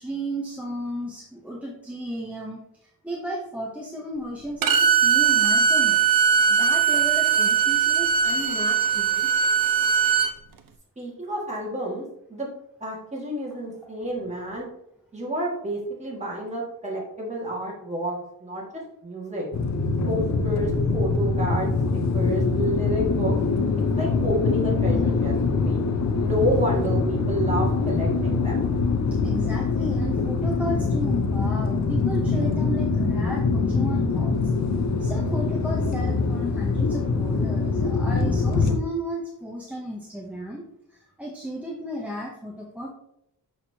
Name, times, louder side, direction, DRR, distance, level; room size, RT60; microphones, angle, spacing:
voice 1, 0.0-6.0 6.5-9.3 29.2-34.5 35.0-40.6 40.9-42.9, right 1 dB, 5° right, -2 dB, 0.7 m, -34 dB
Bowed string instrument, 4.6-10.3, right 7 dB, 70° right, 0.6 m, -20 dB
voice 2, 11.0-12.0 12.3-12.5 12.8-14.7 15.1-18.6 19.0-19.5 20.0-23.3 24.0-25.8 26.2-28.7, equal, 20° right, -4 dB, 1.7 m, -29 dB
sound 1, 19.5-38.8, left 4 dB, 50° left, 0.6 m, -23 dB
6.2 x 5.8 x 2.7 m, 0.80 s
wide cardioid pair, 180°, 36 cm